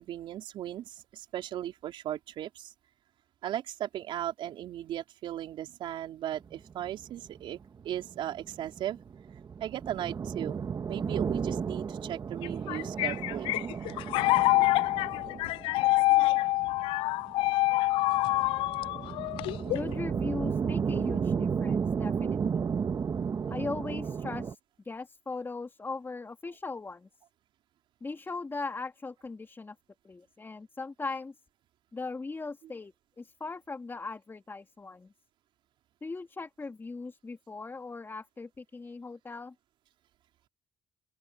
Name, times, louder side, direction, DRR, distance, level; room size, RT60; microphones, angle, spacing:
voice 1, 0.0-2.7 3.4-7.6 7.8-9.0 9.6-10.6 10.9-13.5, right 12 dB, 65° right, 4.4 m, -37 dB
sound 1, 6.4-24.5, right 6 dB, 40° right, 1.9 m, -33 dB
sound 2, 12.4-20.0, left 19 dB, 75° left, 0.4 m, -26 dB
voice 2, 19.7-22.7 23.5-24.6 24.8-27.1 28.0-29.7 30.0-31.3 31.9-35.1 36.0-39.5, left 3 dB, 25° left, 3.2 m, -39 dB
open air
supercardioid pair, 70°, 9 cm